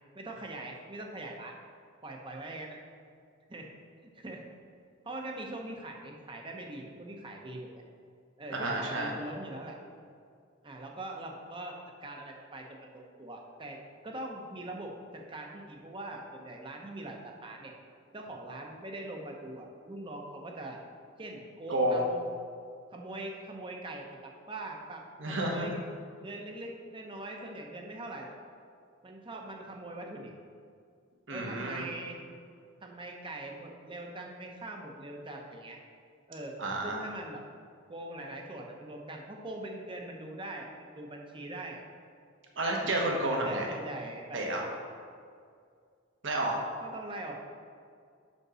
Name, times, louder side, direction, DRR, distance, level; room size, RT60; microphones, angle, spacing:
voice 1, 0.1-1.5 2.0-2.8 3.5-3.7 4.1-4.4 5.0-7.8 8.4-9.8 10.6-13.8 14.0-17.7 18.1-20.8 21.2-22.2 22.9-25.7 26.2-28.3 29.0-30.3 31.3-32.2 32.8-35.8 36.3-37.4 37.9-41.8 42.8-43.0 43.4-44.4 46.8-47.3, right 1 dB, 25° right, 1 dB, 0.8 m, -42 dB
voice 2, 8.5-9.1 21.7-22.0 25.2-25.8 31.3-31.8 36.6-37.0 42.6-43.7 44.3-44.6 46.2-46.6, right 1 dB, 65° right, -1 dB, 1.2 m, -30 dB
5.3 x 5.2 x 6.2 m, 2.2 s
head